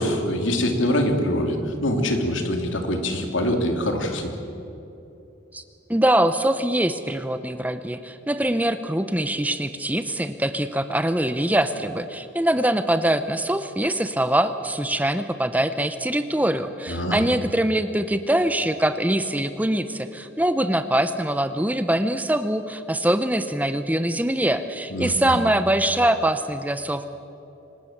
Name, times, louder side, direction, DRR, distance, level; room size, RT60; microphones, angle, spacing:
voice 1, 0.0-4.4 16.9-17.2 24.9-25.4, left 1 dB, 80° left, 4 dB, 2.8 m, -24 dB
voice 2, 5.9-27.1, right 1 dB, 10° right, 10 dB, 0.7 m, -23 dB
25.0 x 19.0 x 7.3 m, 2.8 s
head